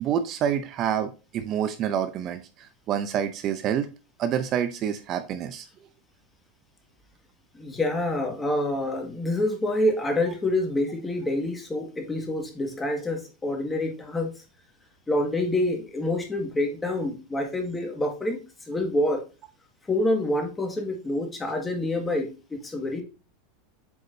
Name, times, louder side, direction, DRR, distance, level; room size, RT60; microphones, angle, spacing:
voice 1, 0.0-3.9 4.2-5.6, right 9 dB, 40° right, 10 dB, 0.6 m, -27 dB
voice 2, 7.6-14.3 15.1-18.4 18.7-19.2 19.9-23.0, left 1 dB, 10° left, 4 dB, 1.8 m, -27 dB
7.9 x 5.0 x 2.7 m, 0.31 s
supercardioid pair, 135°, 0 cm